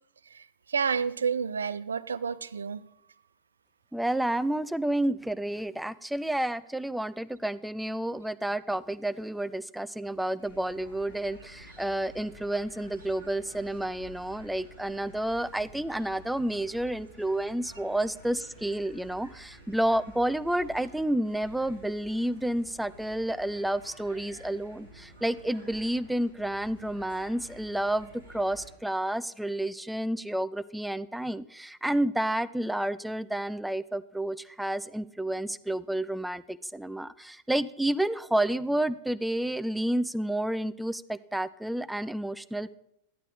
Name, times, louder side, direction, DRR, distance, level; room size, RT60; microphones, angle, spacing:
voice 1, 0.3-2.8, right 6 dB, 70° right, 15 dB, 0.4 m, -30 dB
voice 2, 3.9-42.8, right 1 dB, 5° right, 16 dB, 0.4 m, -30 dB
sound 1, 10.4-28.7, equal, 90° right, 4.9 m, -51 dB
13.5 x 11.0 x 4.1 m, 0.82 s
figure-of-eight pair, 90°, 0 cm